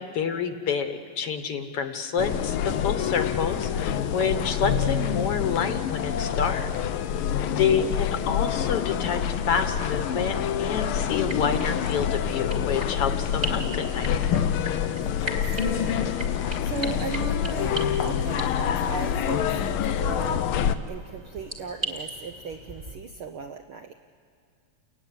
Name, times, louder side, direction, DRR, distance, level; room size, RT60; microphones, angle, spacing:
voice 1, 0.0-6.7 7.6-9.2 9.5-14.1, left 6 dB, 60° left, 8 dB, 1.9 m, -28 dB
sound 1, 2.2-20.8, left 9 dB, 80° left, 1.2 m, -26 dB
voice 2, 7.0-7.6 15.0-16.1 16.6-24.0, right 5 dB, 70° right, 5 dB, 1.3 m, -37 dB
sound 2, 11.2-23.0, right 1 dB, 25° right, 2.4 m, -39 dB
29.5 x 16.0 x 9.9 m, 2.4 s
omnidirectional pair, 3.3 m